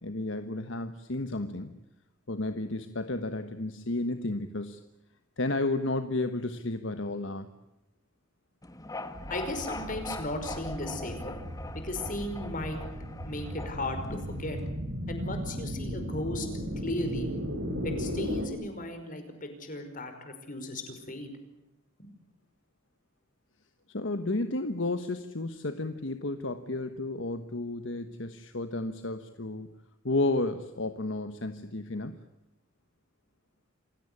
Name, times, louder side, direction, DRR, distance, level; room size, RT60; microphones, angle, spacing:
voice 1, 0.0-1.7 2.3-4.8 5.4-7.5 23.9-29.7 30.0-32.3, left 2 dB, 70° left, 9 dB, 1.3 m, -32 dB
sound 1, 8.6-14.7, left 2 dB, 20° left, 1.7 m, -42 dB
sound 2, 9.1-18.5, equal, 75° right, 4.0 m, -36 dB
voice 2, 9.3-12.8 13.2-14.6 15.1-16.5 16.8-17.3 17.8-21.3 22.0-22.1, left 1 dB, 45° left, 7 dB, 5.2 m, -36 dB
28.0 x 16.5 x 9.9 m, 0.89 s
head